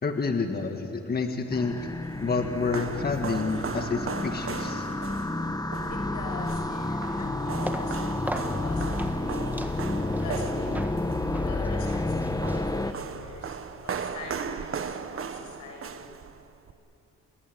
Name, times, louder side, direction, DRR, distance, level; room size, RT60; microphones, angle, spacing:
voice 1, 0.0-1.7 2.2-4.9, left 4 dB, 30° left, 5 dB, 1.7 m, -29 dB
sound 1, 1.5-12.9, left 2 dB, 10° left, 1.3 m, -30 dB
sound 2, 1.7-16.7, right 6 dB, 45° right, 1.4 m, -38 dB
voice 2, 5.9-9.6 10.2-10.7 11.4-16.1, left 3 dB, 85° left, 2 dB, 6.9 m, -43 dB
sound 3, 7.5-13.1, right 1 dB, 5° right, 1.8 m, -40 dB
29.0 x 19.0 x 9.4 m, 2.8 s
cardioid pair, 90°, 30 cm